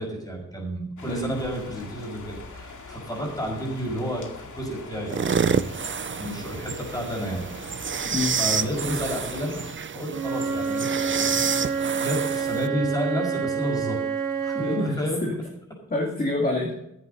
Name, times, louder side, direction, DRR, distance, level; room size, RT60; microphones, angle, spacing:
voice 1, 0.0-5.7 6.2-7.4 8.4-9.6 9.9-11.4 12.0-14.0 14.4-14.5 15.0-15.2, equal, 10° left, 0 dB, 5.7 m, -31 dB
sound 1, 1.0-9.7, left 3 dB, 75° left, 2.3 m, -43 dB
sound 2, 5.1-12.7, right 6 dB, 40° right, 0.5 m, -29 dB
voice 2, 8.0-8.4 14.5-15.4 15.9-16.8, left 2 dB, 30° left, -2 dB, 2.4 m, -27 dB
Wind instrument woodwind instrument, 10.1-14.9, right 6 dB, 75° right, 2.7 m, -28 dB
15.0 x 11.0 x 4.1 m, 0.81 s
wide cardioid pair, 180°, 31 cm